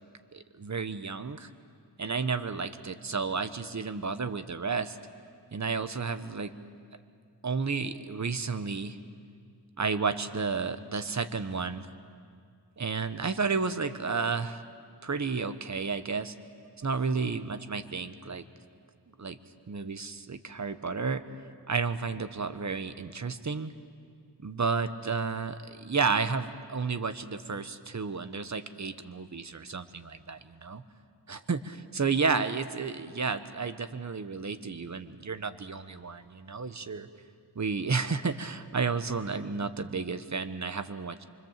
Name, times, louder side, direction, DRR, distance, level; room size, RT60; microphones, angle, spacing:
voice 1, 0.3-1.5 2.0-5.0 5.5-6.5 7.4-9.0 9.8-11.9 12.8-14.6 15.0-16.3 16.8-18.4 19.2-19.4 19.7-21.2 21.7-23.7 24.4-30.8 31.3-37.1 37.5-41.2, right 4 dB, 40° right, 11 dB, 1.1 m, -32 dB
25.5 x 24.5 x 7.5 m, 2.2 s
wide cardioid pair, 70°, 43 cm